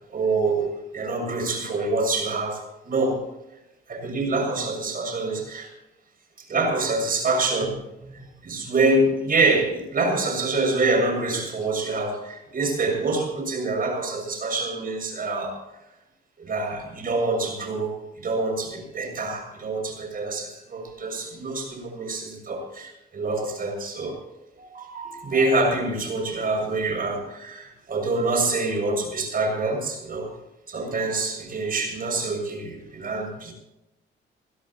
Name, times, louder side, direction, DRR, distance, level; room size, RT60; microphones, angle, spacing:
voice 1, 0.1-3.2 3.9-5.7 6.4-15.6 16.4-24.2 24.6-30.3 30.7-33.5, right 3 dB, 45° right, 3 dB, 7.0 m, -26 dB
21.5 x 16.5 x 3.0 m, 0.94 s
cardioid pair, 90°, 20 cm